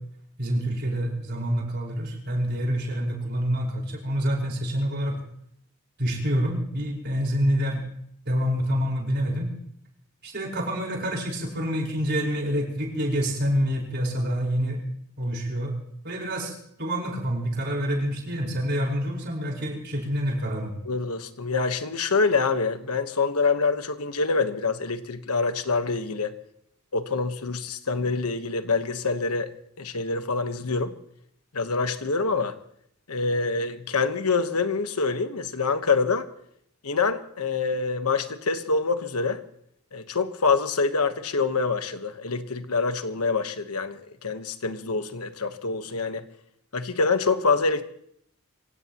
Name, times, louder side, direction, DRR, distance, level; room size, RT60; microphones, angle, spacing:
voice 1, 0.4-5.2 6.0-7.8 8.3-9.5 10.2-14.8 15.2-15.7 16.0-20.7, equal, 50° right, -1 dB, 5.0 m, -27 dB
voice 2, 20.8-26.3 26.9-29.5 29.8-30.9 31.5-32.5 33.1-36.3 36.8-39.4 39.9-46.2 46.7-47.8, left 4 dB, 90° left, 9 dB, 1.2 m, -26 dB
25.5 x 16.5 x 3.0 m, 0.70 s
head